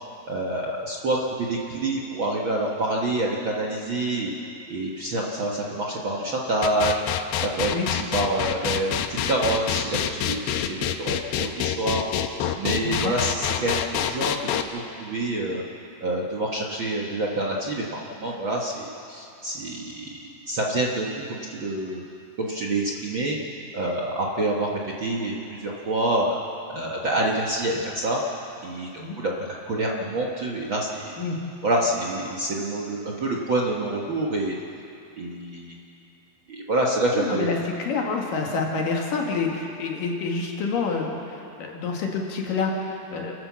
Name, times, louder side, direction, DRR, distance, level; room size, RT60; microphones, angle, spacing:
voice 1, 0.3-4.3 4.7-7.0 7.4-15.6 16.0-20.2 20.5-22.0 22.4-23.4 23.7-26.4 26.7-28.2 28.6-31.2 31.6-34.5 35.2-35.8 36.5-37.5, right 2 dB, 65° right, -2 dB, 1.2 m, -27 dB
sound 1, 6.6-14.6, left 10 dB, 85° left, 2.9 m, -26 dB
voice 2, 12.8-13.1 29.0-29.2 31.2-31.4 37.1-43.3, left 4 dB, 65° left, 0 dB, 3.1 m, -28 dB
29.5 x 12.0 x 7.4 m, 2.8 s
omnidirectional pair, 4.5 m